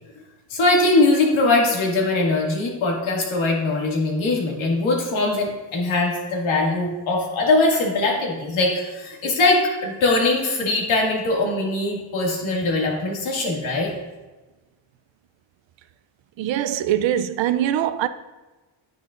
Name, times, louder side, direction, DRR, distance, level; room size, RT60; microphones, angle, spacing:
voice 1, 0.5-13.9, left 2 dB, 85° left, 2.2 m, -21 dB
voice 2, 16.4-18.1, right 11 dB, 75° right, 0.6 m, -22 dB
9.6 x 9.1 x 2.5 m
cardioid pair, 130°, 46 cm